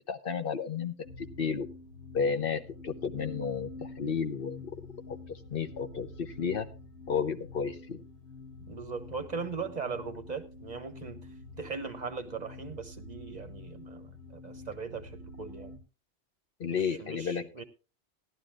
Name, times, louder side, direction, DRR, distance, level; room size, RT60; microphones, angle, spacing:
voice 1, 0.1-1.7 2.1-4.8 5.1-6.7 7.1-8.0 16.6-17.5, left 6 dB, 55° left, 9 dB, 1.0 m, -32 dB
sound 1, 1.0-15.8, left 2 dB, 75° left, 1.9 m, -47 dB
voice 2, 8.7-11.3 11.6-15.7 16.7-17.6, right 5 dB, 45° right, 9 dB, 0.9 m, -39 dB
17.0 x 11.5 x 2.5 m, 0.31 s
omnidirectional pair, 1.1 m